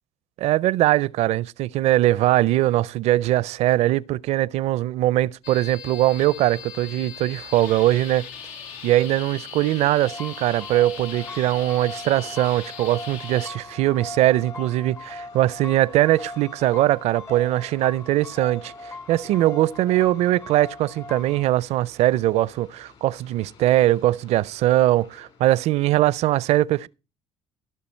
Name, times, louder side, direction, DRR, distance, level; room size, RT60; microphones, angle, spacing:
voice 1, 0.4-8.3 8.8-26.9, right 15 dB, 65° right, 0.5 m, -21 dB
sound 1, 5.4-13.5, left 7 dB, 85° left, 1.0 m, -39 dB
sound 2, 5.9-25.7, left 5 dB, 55° left, 4.2 m, -52 dB
sound 3, 10.0-21.5, left 2 dB, 25° left, 0.6 m, -40 dB
16.5 x 6.7 x 4.4 m
supercardioid pair, 70°, 12 cm